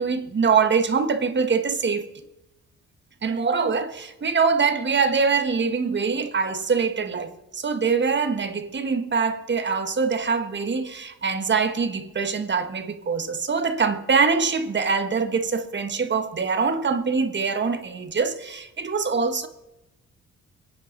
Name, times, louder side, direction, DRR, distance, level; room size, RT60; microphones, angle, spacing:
voice 1, 0.0-2.1 3.2-19.5, right 5 dB, 35° right, 1.6 m, -24 dB
23.5 x 10.0 x 4.1 m
cardioid pair, 90°, 30 cm